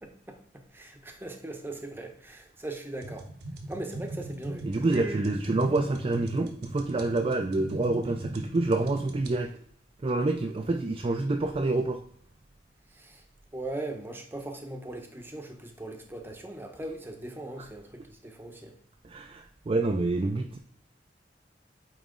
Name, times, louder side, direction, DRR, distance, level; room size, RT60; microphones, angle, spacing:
voice 1, 0.0-3.3 3.6-5.2 12.9-13.2 13.5-18.7, right 2 dB, 15° right, 4 dB, 0.8 m, -39 dB
sound 1, 3.0-9.4, right 1 dB, 65° right, 0.9 m, -39 dB
voice 2, 4.6-9.5 10.0-12.0 19.0-20.6, right 2 dB, 30° right, 3 dB, 0.4 m, -27 dB
8.8 x 3.1 x 3.7 m, 0.64 s
head